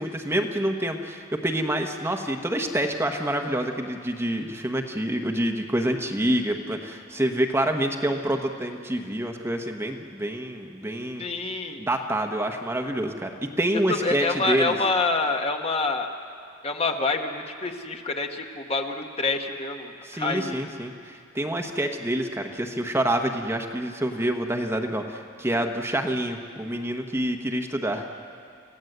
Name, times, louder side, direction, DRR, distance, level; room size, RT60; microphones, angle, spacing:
voice 1, 0.0-11.3 11.8-14.8 20.0-28.0, right 1 dB, 10° right, 4 dB, 1.1 m, -27 dB
voice 2, 11.2-11.8 13.9-16.1 16.6-20.6, left 3 dB, 30° left, 4 dB, 1.2 m, -27 dB
28.5 x 16.5 x 7.9 m, 2.3 s
head